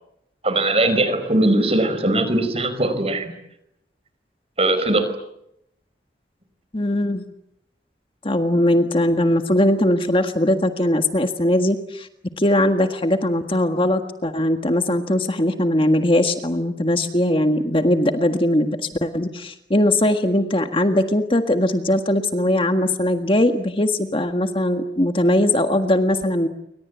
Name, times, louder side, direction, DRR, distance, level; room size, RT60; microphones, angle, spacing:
voice 1, 0.4-3.3 4.6-5.1, right 2 dB, 35° right, 11 dB, 4.9 m, -20 dB
voice 2, 6.7-7.2 8.2-12.1 12.4-26.5, left 1 dB, 30° left, 7 dB, 1.7 m, -20 dB
29.0 x 24.5 x 8.3 m, 0.80 s
head